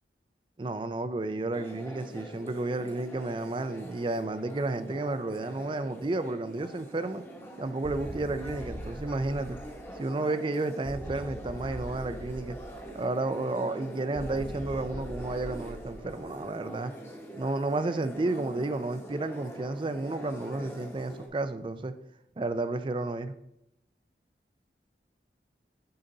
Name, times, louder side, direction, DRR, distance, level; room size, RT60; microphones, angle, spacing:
voice 1, 0.6-7.2 7.6-9.6 9.9-12.6 12.9-16.9 17.3-21.9 22.4-23.4, right 2 dB, 30° right, 11 dB, 0.4 m, -32 dB
sound 1, 1.5-21.3, right 1 dB, 15° left, 1.0 m, -44 dB
sound 2, 7.8-10.1 10.8-13.1 14.2-16.4, equal, 85° right, 1.4 m, -42 dB
9.5 x 4.0 x 3.9 m, 0.84 s
head